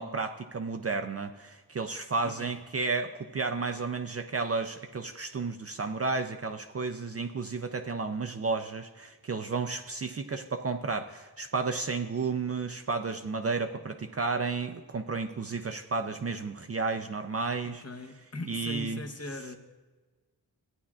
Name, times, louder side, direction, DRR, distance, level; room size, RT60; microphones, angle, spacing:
voice 1, 0.0-17.8 18.5-19.0, right 4 dB, 35° right, 0.4 m, -32 dB
voice 2, 2.2-2.6 17.6-19.6, left 2 dB, 35° left, 0.9 m, -40 dB
15.5 x 9.7 x 2.4 m
wide cardioid pair, 115°, 42 cm